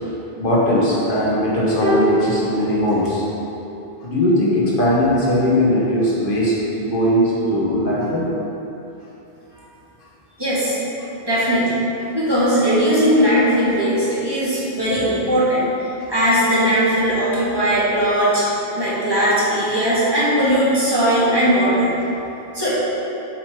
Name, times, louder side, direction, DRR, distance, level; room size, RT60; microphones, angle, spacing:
voice 1, 0.4-3.2 4.0-8.3, equal, 60° left, -6 dB, 1.1 m, -19 dB
sound 1, 1.8-3.5 3.7-3.8, equal, 55° right, 1.2 m, -24 dB
voice 2, 10.4-10.8 11.2-11.8 12.1-18.5 18.7-21.9 22.5-22.8, equal, 25° right, -11 dB, 1.5 m, -18 dB
5.9 x 5.0 x 3.5 m, 3.0 s
omnidirectional pair, 1.0 m